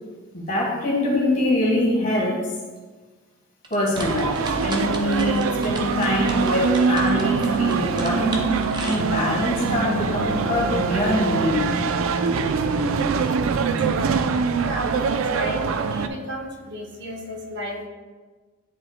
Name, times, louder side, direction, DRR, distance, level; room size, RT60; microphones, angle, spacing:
voice 1, 0.3-2.4 3.7-4.3 4.6-8.4 8.8-11.7, left 1 dB, 40° left, -3 dB, 1.5 m, -24 dB
sound 1, 3.6-9.5, right 2 dB, 20° right, 0.6 m, -36 dB
sound 2, 3.9-16.1, right 5 dB, 75° right, 0.4 m, -23 dB
voice 2, 14.6-14.9 15.2-17.9, equal, 55° right, 1 dB, 0.8 m, -32 dB
10.0 x 4.4 x 2.2 m, 1.4 s
head